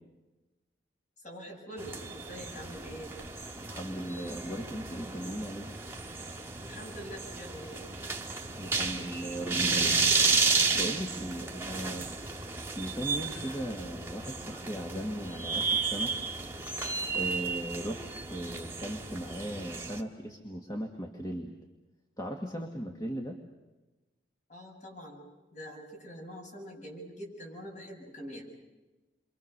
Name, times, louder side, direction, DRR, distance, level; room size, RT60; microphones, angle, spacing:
voice 1, 1.2-3.1 6.6-7.8 24.5-25.2 25.5-28.5, equal, 40° left, 0 dB, 7.9 m, -44 dB
sound 1, 1.8-20.0, right 4 dB, 15° right, 1.9 m, -32 dB
voice 2, 3.6-5.7 8.6-10.1 10.7-12.1 12.8-16.1 17.1-21.5 22.2-23.4, right 1 dB, 20° left, 2 dB, 2.0 m, -37 dB
29.5 x 25.0 x 6.9 m, 1.1 s
head